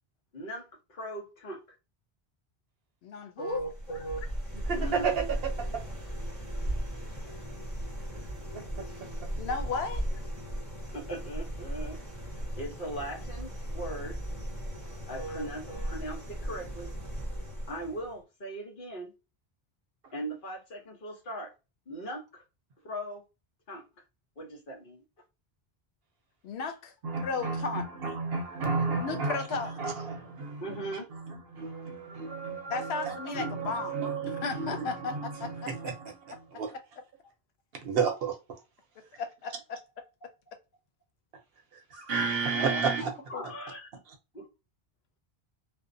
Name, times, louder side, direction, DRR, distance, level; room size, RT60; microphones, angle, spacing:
voice 1, 0.3-1.6 3.4-4.2 4.7-5.3 10.9-12.0 12.6-14.2 15.1-16.9 17.7-19.1 20.1-21.5 21.9-22.4 22.8-23.2 23.7-23.8 24.4-25.0 30.6-31.1 42.5-42.8 43.3-43.9 44.3-44.4, right 1 dB, 55° left, 1.0 m, -39 dB
voice 2, 3.0-3.6 9.4-10.1 26.4-26.9 27.2-27.9 29.0-29.9 32.7-34.0 34.3-35.7 36.5-36.6 39.2-39.8 43.3-43.4, left 4 dB, 85° left, 0.8 m, -34 dB
sound 1, 3.5-18.2, right 1 dB, 35° left, 1.2 m, -37 dB
voice 3, 4.7-5.8 8.5-8.8 27.0-36.7 37.8-38.4 41.9-43.1, right 5 dB, 70° right, 0.9 m, -32 dB
2.6 x 2.0 x 2.5 m
omnidirectional pair, 1.0 m